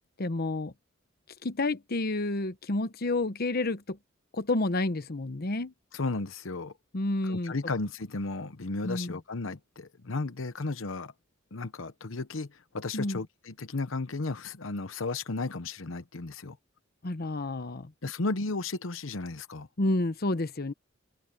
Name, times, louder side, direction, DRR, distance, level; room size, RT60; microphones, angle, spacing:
voice 1, 0.2-0.7 1.4-4.0 4.3-5.7 6.9-7.5 8.8-9.2 12.9-13.2 17.0-17.9 19.8-20.7, left 2 dB, 50° left, 1.0 m, -30 dB
voice 2, 5.9-6.7 7.2-11.1 11.5-16.6 18.0-19.7, left 3 dB, 80° left, 1.0 m, -34 dB
open air
head